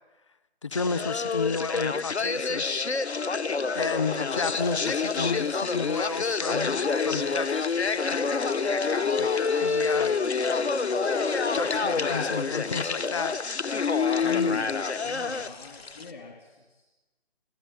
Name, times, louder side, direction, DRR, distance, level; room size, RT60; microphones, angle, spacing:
voice 1, 0.6-2.9 3.7-6.8 7.0-7.7 8.1-8.3 9.2-9.3 9.6-10.2 11.5-13.4, left 4 dB, 30° left, 15 dB, 0.8 m, -31 dB
sound 1, 0.7-15.5, left 4 dB, 90° left, 1.2 m, -27 dB
sound 2, 4.3-16.1, left 4 dB, 70° left, 1.8 m, -46 dB
voice 2, 14.2-16.8, left 4 dB, 50° left, 1 dB, 3.3 m, -40 dB
27.5 x 16.0 x 9.1 m, 1.1 s
figure-of-eight pair, 165°, 32 cm